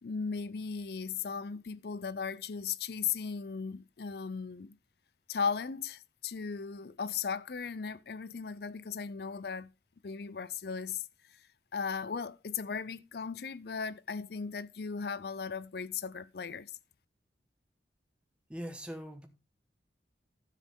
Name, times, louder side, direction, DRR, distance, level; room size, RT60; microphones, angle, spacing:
voice 1, 0.0-4.8 5.3-9.7 10.0-11.0 11.7-16.7, left 6 dB, 60° left, 0.5 m, -37 dB
voice 2, 18.5-19.3, equal, 5° right, 1.2 m, -41 dB
12.5 x 7.5 x 3.6 m
head